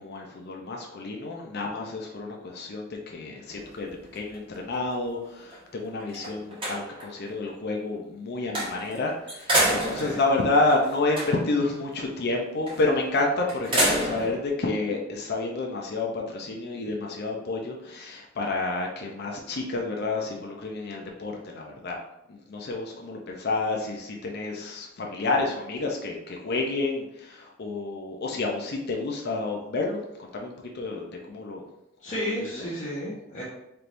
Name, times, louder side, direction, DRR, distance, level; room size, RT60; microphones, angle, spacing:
voice 1, 0.0-22.0 22.3-31.6 32.2-32.6, left 2 dB, 55° left, 0 dB, 0.6 m, -29 dB
sound 1, 3.5-5.0 5.5-5.6 6.0-7.2 8.5-9.0 9.3-11.6 12.7-13.0 13.5-14.4, right 1 dB, 25° right, 1.5 m, -29 dB
voice 2, 32.0-33.4, equal, 35° left, -9 dB, 0.9 m, -32 dB
4.4 x 3.3 x 2.6 m, 0.86 s
head